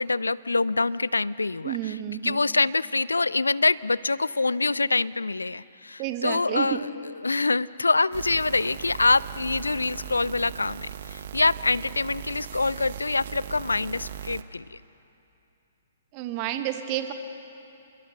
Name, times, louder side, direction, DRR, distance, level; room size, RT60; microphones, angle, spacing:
voice 1, 0.0-14.8, left 3 dB, 80° left, 20 dB, 0.5 m, -25 dB
voice 2, 1.6-2.4 6.0-6.8 16.1-17.1, right 12 dB, 35° right, 7 dB, 1.8 m, -30 dB
sound 1, 8.1-14.4, right 9 dB, 55° right, 1.0 m, -39 dB
28.0 x 21.5 x 6.7 m, 2.8 s
figure-of-eight pair, 120°, 0 cm